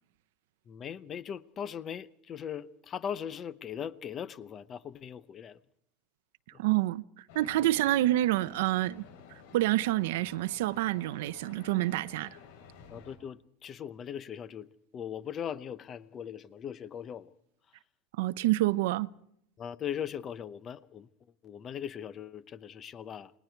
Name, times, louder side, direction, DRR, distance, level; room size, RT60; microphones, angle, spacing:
voice 1, 0.7-5.6 6.5-6.6 12.9-17.3 19.6-21.1 21.4-23.3, left 8 dB, 25° left, 0.7 m, -39 dB
voice 2, 6.6-7.0 7.3-9.0 9.5-12.4 18.2-19.1, right 16 dB, 75° right, 0.8 m, -27 dB
sound 1, 7.3-13.2, left 6 dB, 70° left, 7.6 m, -52 dB
29.5 x 20.0 x 4.6 m
supercardioid pair, 175°, 0 cm